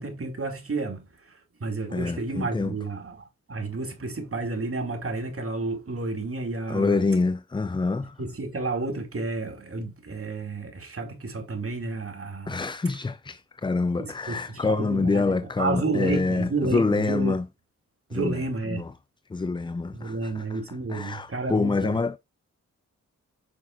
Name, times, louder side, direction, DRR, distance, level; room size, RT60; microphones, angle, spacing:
voice 1, 0.0-7.0 8.2-12.6 14.0-17.4 18.1-18.9 19.9-22.0, right 3 dB, 45° right, 2.6 m, -31 dB
voice 2, 1.9-2.8 6.7-8.2 12.5-17.5 18.1-18.4 18.7-18.9 19.3-20.6 20.9-22.2, left 3 dB, 15° left, 0.4 m, -26 dB
8.7 x 6.1 x 2.5 m
cardioid pair, 50°, 32 cm